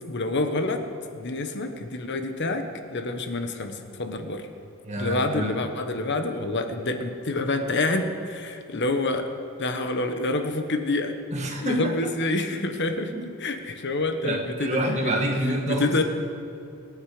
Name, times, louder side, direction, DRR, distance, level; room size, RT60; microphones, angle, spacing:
voice 1, 0.1-0.8 1.1-2.6 2.9-4.4 5.0-9.3 9.6-11.1 11.6-13.1 13.4-15.2 15.7-16.0, left 2 dB, 50° left, 6 dB, 1.2 m, -27 dB
voice 2, 4.8-5.5 11.3-12.0 13.1-13.3 14.2-16.0, right 1 dB, 30° right, 1 dB, 1.9 m, -27 dB
26.5 x 9.5 x 5.0 m, 2.5 s
head